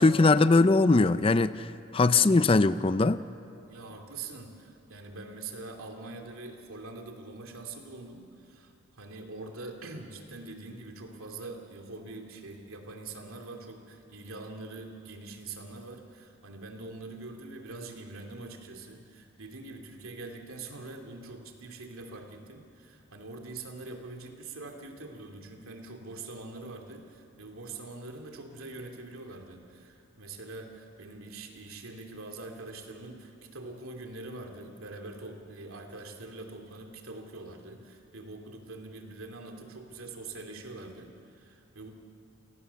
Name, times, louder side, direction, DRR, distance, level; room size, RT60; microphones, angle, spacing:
voice 1, 0.0-3.2, left 3 dB, 25° left, 14 dB, 0.4 m, -21 dB
voice 2, 3.7-41.9, right 3 dB, 85° right, 3 dB, 2.7 m, -44 dB
29.0 x 18.5 x 6.9 m, 2.5 s
head